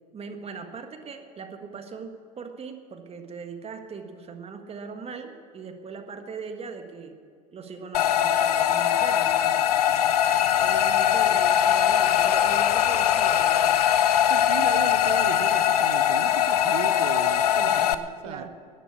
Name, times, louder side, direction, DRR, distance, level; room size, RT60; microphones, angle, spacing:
voice 1, 0.1-7.1 7.5-9.6 10.5-13.8 17.6-18.5, right 5 dB, 30° right, 6 dB, 1.6 m, -40 dB
sound 1, 7.9-17.9, left 10 dB, 80° left, 0.6 m, -21 dB
voice 2, 14.3-18.5, right 9 dB, 70° right, 11 dB, 1.0 m, -36 dB
14.0 x 10.0 x 8.4 m, 2.2 s
hypercardioid pair, 80°, 20 cm